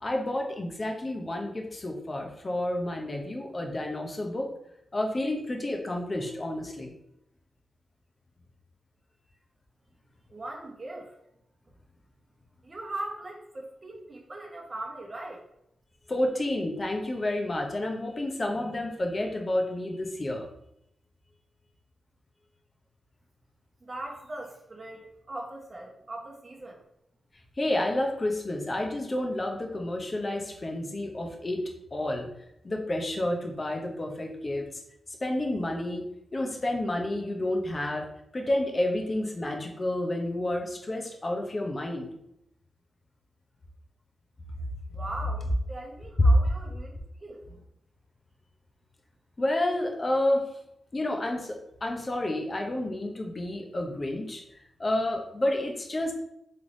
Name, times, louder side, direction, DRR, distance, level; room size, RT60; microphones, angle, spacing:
voice 1, 0.0-4.5 4.9-6.9 16.1-20.5 27.6-31.6 31.9-32.3 32.6-34.6 35.2-36.0 36.3-38.0 38.3-42.1 46.2-46.3 49.4-50.4 50.9-54.4 54.8-56.1, left 1 dB, 35° left, 1 dB, 0.8 m, -30 dB
voice 2, 10.3-11.1 12.6-15.4 23.8-26.8 44.9-46.9 47.2-47.4, right 2 dB, 35° right, 0 dB, 1.0 m, -40 dB
3.7 x 3.3 x 3.9 m, 0.79 s
cardioid pair, 90°, 0 cm